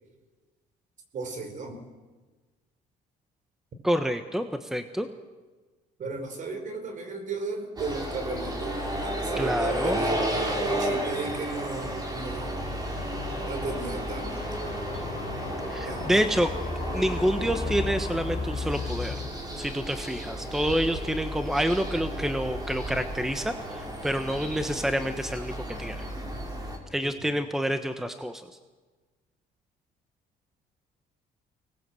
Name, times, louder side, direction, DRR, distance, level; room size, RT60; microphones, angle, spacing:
voice 1, 1.1-1.8 6.0-12.8 13.4-14.5 14.9-15.0 15.8-16.3 27.0-27.3, right 3 dB, 50° right, 7 dB, 4.7 m, -35 dB
voice 2, 3.8-5.1 9.4-10.0 15.7-16.5 16.9-19.2 19.6-26.0 26.9-28.4, equal, ahead, 8 dB, 1.2 m, -28 dB
sound 1, 7.8-26.8, right 1 dB, 25° right, 4.6 m, -33 dB
sound 2, 12.3-19.3, left 4 dB, 45° left, 3.6 m, -36 dB
25.0 x 19.5 x 7.9 m, 1.3 s
cardioid pair, 110°, 17 cm